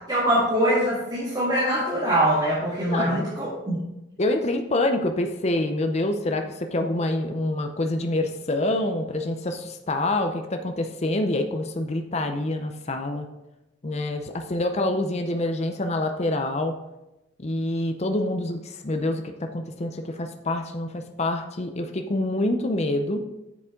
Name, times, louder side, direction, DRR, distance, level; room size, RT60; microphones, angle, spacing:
voice 1, 0.0-3.8, right 1 dB, 20° right, -7 dB, 1.9 m, -23 dB
voice 2, 2.9-3.3 4.2-13.3 13.8-16.8 17.4-23.2, left 1 dB, 35° left, 5 dB, 0.6 m, -26 dB
8.2 x 6.8 x 3.7 m, 0.95 s
head